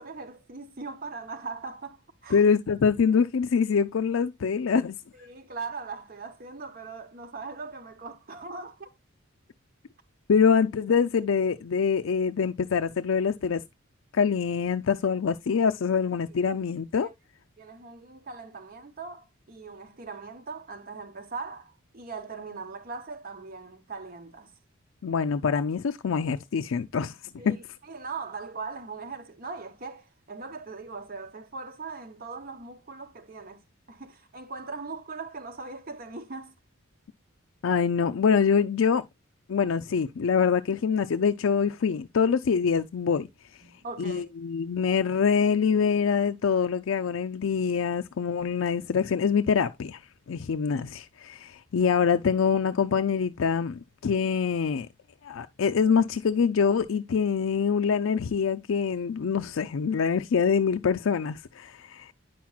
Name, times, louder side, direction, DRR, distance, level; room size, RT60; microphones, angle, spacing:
voice 1, 0.0-2.4 5.1-8.9 16.3-16.6 17.0-17.1 17.6-24.5 27.4-33.6 33.9-36.5 43.6-44.3, right 4 dB, 45° right, 0.9 m, -40 dB
voice 2, 2.3-5.0 10.3-13.6 14.1-17.1 25.0-27.2 27.4-27.5 37.6-39.0 39.5-43.3 44.0-50.0 50.3-54.9 55.2-62.1, left 6 dB, 70° left, 0.4 m, -25 dB
9.2 x 5.9 x 2.3 m
head